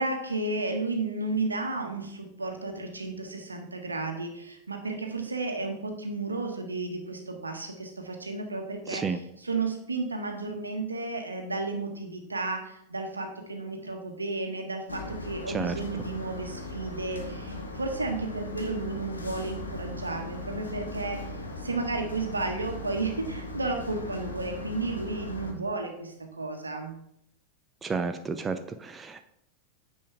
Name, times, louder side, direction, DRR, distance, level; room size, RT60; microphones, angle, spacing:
voice 1, 0.0-27.0, right 3 dB, 80° right, 4 dB, 1.4 m, -33 dB
voice 2, 8.9-9.2 15.5-15.7 27.8-29.3, right 4 dB, 20° right, 9 dB, 0.6 m, -31 dB
sound 1, 14.9-25.5, left 2 dB, 80° left, 1.3 m, -38 dB
9.8 x 7.0 x 3.5 m, 0.74 s
figure-of-eight pair, 90°, 0 cm